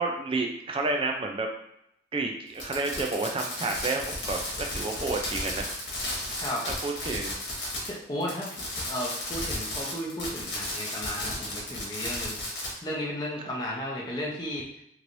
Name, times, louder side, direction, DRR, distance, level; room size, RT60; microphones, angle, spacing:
voice 1, 0.0-1.5 2.1-5.7 6.7-7.3, right 3 dB, 30° right, 2 dB, 0.4 m, -30 dB
Fireworks, 2.5-8.0 8.2-12.7, left 1 dB, 80° left, 1.2 m, -34 dB
voice 2, 6.3-6.7 7.8-14.6, equal, 25° left, -4 dB, 0.7 m, -34 dB
3.0 x 3.0 x 2.6 m, 0.76 s
head